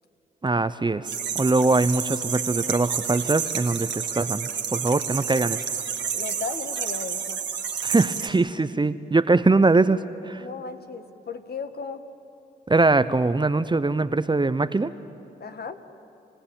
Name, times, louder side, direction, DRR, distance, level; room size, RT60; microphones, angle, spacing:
voice 1, 0.4-1.1 1.3-5.6 7.8-10.4 12.7-14.9, right 3 dB, 25° right, 14 dB, 0.9 m, -22 dB
sound 1, 1.0-8.3, right 7 dB, 65° right, 1.8 m, -30 dB
voice 2, 6.1-7.4 10.4-12.0 15.4-15.8, left 5 dB, 55° left, 9 dB, 1.5 m, -35 dB
29.5 x 16.5 x 9.0 m, 2.8 s
supercardioid pair, 45°, 20 cm